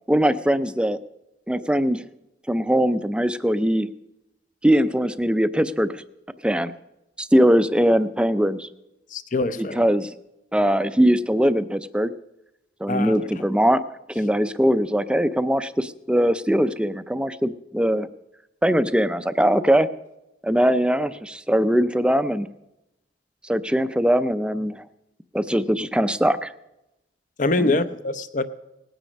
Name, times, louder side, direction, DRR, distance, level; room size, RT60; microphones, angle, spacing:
voice 1, 0.1-1.0 1.5-2.0 2.5-3.9 4.6-6.0 6.4-6.7 7.2-8.7 9.6-10.1 10.5-12.1 12.8-13.8 14.1-18.1 18.6-19.9 20.4-22.5 23.4-24.8 25.3-26.5 27.6-27.8, equal, 5° right, 13 dB, 0.4 m, -21 dB
voice 2, 9.1-9.8 12.9-13.2 27.4-28.4, left 2 dB, 45° left, 12 dB, 0.7 m, -24 dB
19.0 x 9.2 x 5.3 m, 0.92 s
head